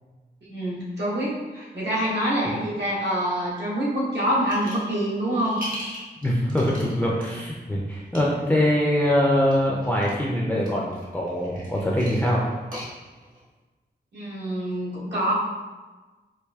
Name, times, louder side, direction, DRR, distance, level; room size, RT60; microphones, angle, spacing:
voice 1, 0.4-5.6 14.1-15.3, equal, 75° right, -7 dB, 1.2 m, -26 dB
sound 1, 4.5-4.9 5.3-7.4 7.9-8.2 9.4-10.2 10.6-13.4, equal, 55° right, 1.2 m, -38 dB
voice 2, 6.2-12.4, left 1 dB, 10° left, -4 dB, 0.4 m, -23 dB
4.7 x 2.5 x 2.3 m, 1.3 s
wide cardioid pair, 125°, 18 cm